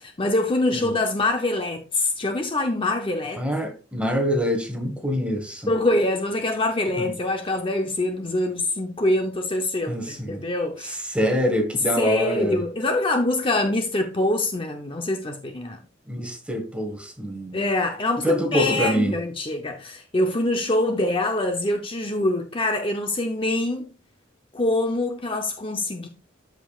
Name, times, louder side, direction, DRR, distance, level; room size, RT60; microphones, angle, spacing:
voice 1, 0.0-3.4 5.7-11.0 12.0-15.8 17.5-23.9 24.5-26.1, left 2 dB, 25° left, 0.7 m, -24 dB
voice 2, 3.4-5.7 7.0-7.1 9.9-10.4 10.8-12.6 16.1-17.6 18.2-19.1, equal, 5° right, 1.5 m, -25 dB
13.0 x 5.1 x 2.4 m
head